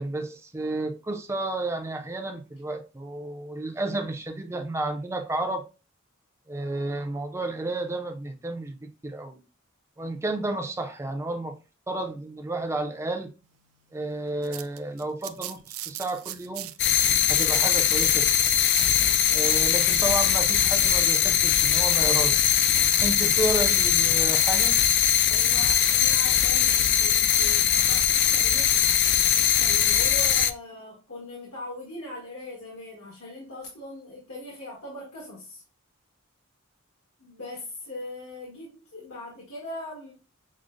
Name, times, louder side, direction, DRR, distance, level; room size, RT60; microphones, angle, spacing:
voice 1, 0.0-5.6 6.5-9.4 10.0-11.6 11.9-13.3 13.9-16.7 17.3-18.4 19.3-22.4 23.0-24.8, right 2 dB, 15° right, 0.5 m, -31 dB
sound 1, 14.2-19.8, right 14 dB, 80° right, 0.3 m, -39 dB
sound 2, 16.8-30.5, left 10 dB, 55° left, 0.3 m, -21 dB
voice 2, 25.3-28.7 29.5-35.6 37.2-40.1, left 1 dB, 75° left, 1.4 m, -40 dB
6.2 x 2.1 x 2.5 m
head